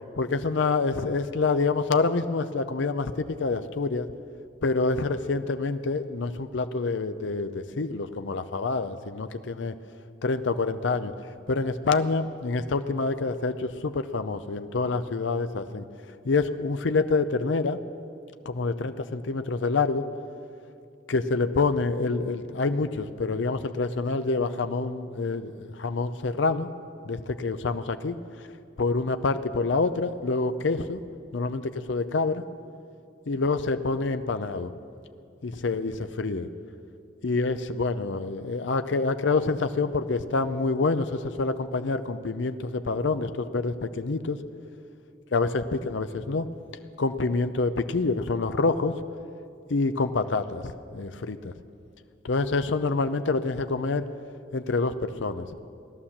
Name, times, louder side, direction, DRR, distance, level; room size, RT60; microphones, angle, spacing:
voice 1, 0.2-4.1 4.6-9.8 10.2-11.1 11.5-15.8 16.2-17.8 18.6-20.0 21.1-26.7 27.0-28.2 28.8-31.0 31.3-32.5 33.3-34.7 35.4-36.5 37.2-44.4 45.3-46.5 47.0-48.9 49.7-51.5 52.2-54.0 54.5-55.5, left 3 dB, 75° left, 10 dB, 0.6 m, -27 dB
17.0 x 11.5 x 7.2 m, 2.6 s
head